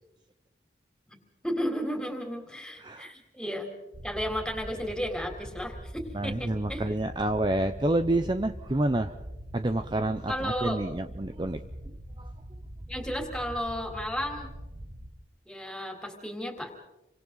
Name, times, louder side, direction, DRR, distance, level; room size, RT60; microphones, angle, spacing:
voice 1, 1.1-3.7 4.0-6.9 10.3-10.8 12.9-14.5 15.5-16.7, equal, 5° left, 3 dB, 3.6 m, -33 dB
voice 2, 2.8-3.1 6.1-9.1 9.5-11.6 12.2-12.3, right 1 dB, 25° right, 8 dB, 0.7 m, -28 dB
sound 1, 3.9-15.1, equal, 60° right, 2.5 m, -43 dB
29.5 x 25.0 x 4.0 m, 0.99 s
head